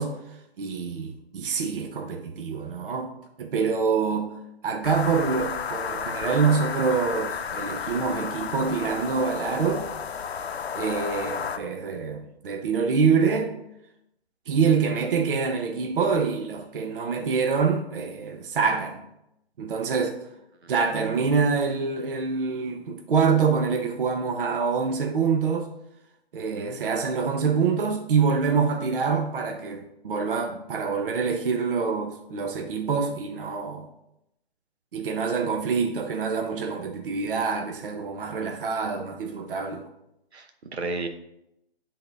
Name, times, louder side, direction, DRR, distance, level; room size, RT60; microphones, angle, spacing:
voice 1, 0.0-3.1 3.4-4.4 4.6-9.9 10.7-13.5 14.5-19.1 19.6-20.1 20.7-25.7 26.3-33.9 34.9-39.9, right 5 dB, 55° right, 5 dB, 0.8 m, -26 dB
sound 1, 4.8-11.6, left 6 dB, 75° left, 0.6 m, -32 dB
voice 2, 20.9-21.2 26.5-26.8 40.3-41.1, right 3 dB, 85° right, 5 dB, 1.0 m, -33 dB
8.5 x 3.8 x 3.9 m, 0.83 s
hypercardioid pair, 155°, 32 cm